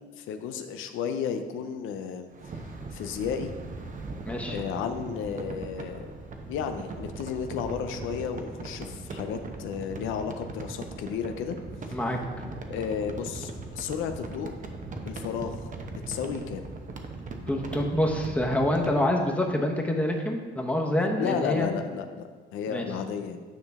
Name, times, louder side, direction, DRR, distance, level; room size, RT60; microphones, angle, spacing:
voice 1, 0.2-2.6 2.9-3.5 4.5-6.1 6.5-11.6 11.9-12.0 12.7-14.5 15.1-15.6 16.1-16.7 21.2-23.4, left 7 dB, 90° left, 7 dB, 0.5 m, -33 dB
sound 1, 2.3-19.0, right 3 dB, 40° right, 0.9 m, -39 dB
voice 2, 4.2-4.6 11.9-12.4 17.5-21.7 22.7-22.9, left 1 dB, 5° left, 1 dB, 1.1 m, -26 dB
9.4 x 5.2 x 3.5 m, 1.5 s
cardioid pair, 90°, 20 cm